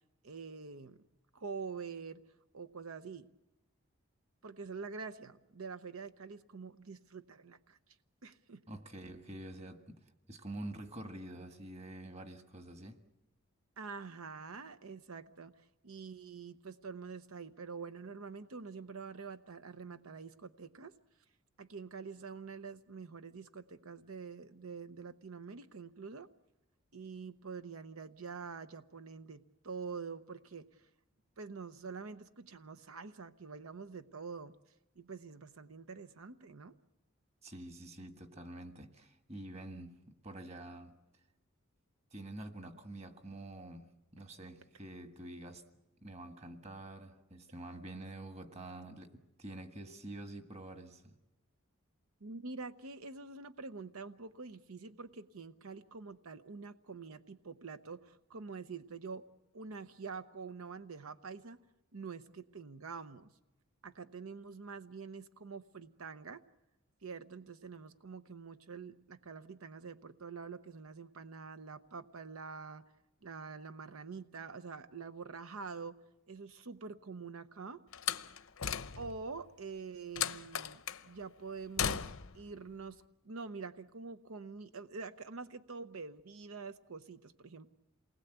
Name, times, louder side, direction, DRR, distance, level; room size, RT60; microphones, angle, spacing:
voice 1, 0.2-1.0 1.3-2.2 2.5-3.3 4.4-7.8 8.2-8.6 13.8-20.9 21.6-26.3 26.9-30.9 31.4-34.6 35.0-36.8 52.2-59.3 59.5-61.6 61.9-63.3 63.8-66.4 67.0-72.8 73.2-76.0 76.3-77.8 79.0-87.7, right 5 dB, 80° right, 0.8 m, -46 dB
voice 2, 8.7-13.0 37.4-41.0 42.1-45.6 46.0-51.2, right 1 dB, 30° right, 1.6 m, -47 dB
Slam, 77.9-79.3 80.2-81.0 81.8-82.4, left 8 dB, 70° left, 0.8 m, -36 dB
28.0 x 20.0 x 8.1 m
head